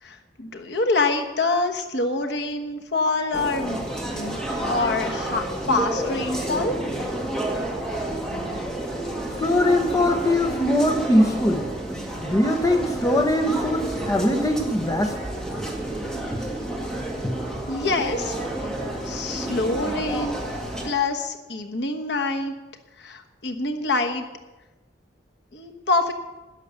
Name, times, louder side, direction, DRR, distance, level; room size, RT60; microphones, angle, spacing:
voice 1, 0.0-3.9 4.1-4.4 4.7-6.8 17.7-18.3 19.0-20.4 20.8-22.5 23.0-24.3 25.5-26.1, left 3 dB, 70° left, 4 dB, 1.2 m, -26 dB
sound 1, 3.3-20.9, right 1 dB, 5° left, 2.0 m, -30 dB
voice 2, 9.4-11.6 12.2-15.2, left 1 dB, 20° left, 5 dB, 1.2 m, -21 dB
12.5 x 10.0 x 6.9 m, 1.1 s
head